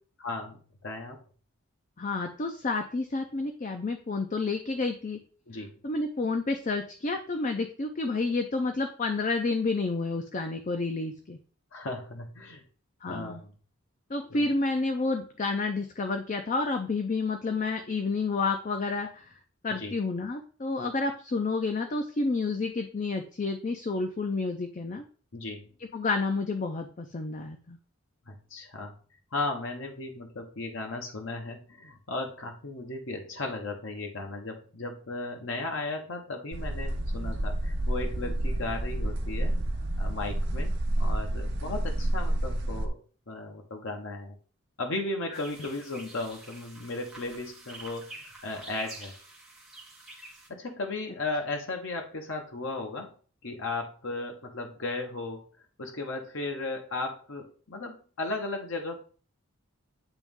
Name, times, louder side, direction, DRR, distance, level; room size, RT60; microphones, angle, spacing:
voice 1, 0.2-0.6 0.8-1.2 5.5-5.7 11.7-12.6 13.1-13.5 14.3-14.5 19.8-19.9 25.3-25.6 28.3-28.9 29.3-39.6 40.0-42.9 43.3-44.4 44.8-49.1 50.5-53.1 53.4-55.4 55.8-59.0, left 2 dB, 60° left, 3 dB, 0.9 m, -35 dB
voice 2, 2.0-5.2 5.8-11.4 13.0-13.4 14.1-19.3 19.6-25.0 25.9-27.8, left 3 dB, 35° left, 5 dB, 0.5 m, -30 dB
sound 1, 36.5-42.9, right 1 dB, 50° right, 0.7 m, -29 dB
sound 2, 45.3-50.5, right 2 dB, ahead, 1.2 m, -47 dB
9.0 x 3.0 x 3.6 m, 0.41 s
head